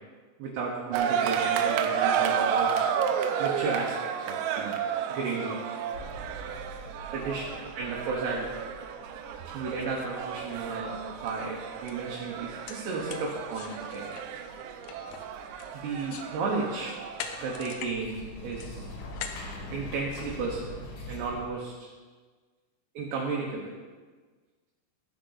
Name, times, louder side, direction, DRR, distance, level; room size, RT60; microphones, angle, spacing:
voice 1, 0.4-2.9 3.4-4.8 5.1-5.6 7.1-8.5 9.5-14.2 15.7-16.9 17.4-18.9 19.7-20.6 21.1-21.9 23.0-23.7, right 4 dB, 70° right, -2 dB, 2.8 m, -33 dB
sound 1, 0.9-17.8, right 7 dB, 90° right, 3.3 m, -32 dB
sound 2, 5.9-21.5, left 1 dB, 65° left, 3.4 m, -45 dB
sound 3, 10.8-10.9 11.3-11.5 11.9-12.0 12.4-16.3 16.7-18.0 18.3-20.4, left 8 dB, 85° left, 2.5 m, -43 dB
12.5 x 8.6 x 4.0 m, 1.4 s
omnidirectional pair, 5.8 m